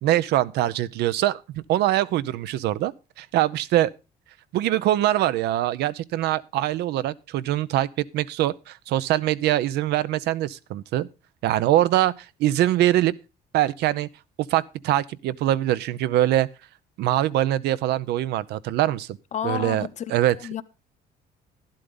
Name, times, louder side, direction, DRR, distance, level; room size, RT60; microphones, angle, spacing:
voice 1, 0.0-2.9 3.2-3.9 4.5-11.1 11.4-12.1 12.4-13.1 13.5-14.1 14.5-16.5 17.0-19.2 19.4-20.4, right 13 dB, 75° right, 0.6 m, -23 dB
voice 2, 19.3-20.0 20.3-20.6, left 9 dB, 45° left, 0.7 m, -30 dB
11.5 x 11.5 x 3.8 m
cardioid pair, 110°, 17 cm